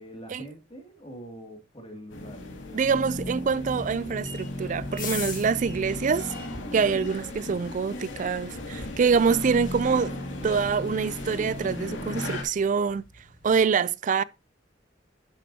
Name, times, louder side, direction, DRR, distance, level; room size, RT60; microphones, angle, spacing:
voice 1, 0.0-2.5, equal, 30° left, 2.4 m, -44 dB
sound 1, 2.1-12.4, left 1 dB, 85° left, 2.1 m, -35 dB
voice 2, 2.7-6.3 6.7-10.1 10.4-13.0 13.4-14.2, right 5 dB, 40° right, 0.3 m, -25 dB
sound 2, 3.6-13.6, left 5 dB, 45° left, 1.6 m, -44 dB
11.0 x 7.5 x 2.8 m
head